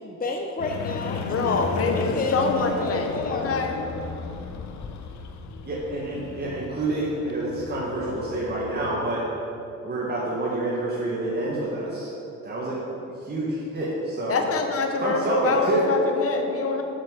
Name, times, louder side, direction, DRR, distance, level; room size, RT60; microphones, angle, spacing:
voice 1, 0.0-3.7, left 2 dB, 30° left, 1 dB, 1.0 m, -30 dB
sound 1, 0.6-9.2, left 4 dB, 70° left, 0.8 m, -35 dB
voice 2, 1.3-3.8 14.3-16.8, left 4 dB, 50° left, 4 dB, 1.2 m, -25 dB
voice 3, 5.6-9.2 9.8-12.1 12.4-12.8 13.2-14.4 15.0-15.9, right 2 dB, 35° right, -6 dB, 1.8 m, -28 dB
7.3 x 7.1 x 6.7 m, 2.9 s
cardioid pair, 90°, 30 cm